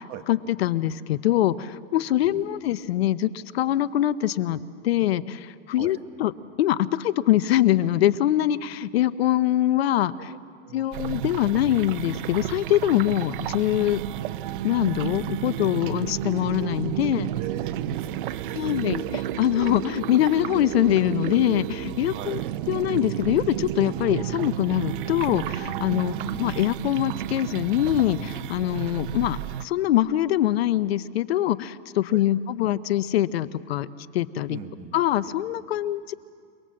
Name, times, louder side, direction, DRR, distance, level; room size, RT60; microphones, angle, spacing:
voice 1, 0.0-6.3 6.6-10.3 10.7-14.0 14.6-17.3 18.6-19.0 19.4-22.4 22.7-26.1 26.4-33.9 34.1-34.6 34.9-36.1, left 13 dB, 65° left, 16 dB, 0.8 m, -23 dB
voice 2, 2.2-2.5 5.8-6.0 10.2-10.4 10.6-11.0 17.3-19.3 22.1-22.5 25.9-26.3 32.1-32.2 34.5-35.0, right 9 dB, 25° right, 7 dB, 1.2 m, -40 dB
sound 1, 10.9-29.7, right 12 dB, 50° right, 0.6 m, -32 dB
28.5 x 19.5 x 7.6 m, 2.1 s
supercardioid pair, 155°, 34 cm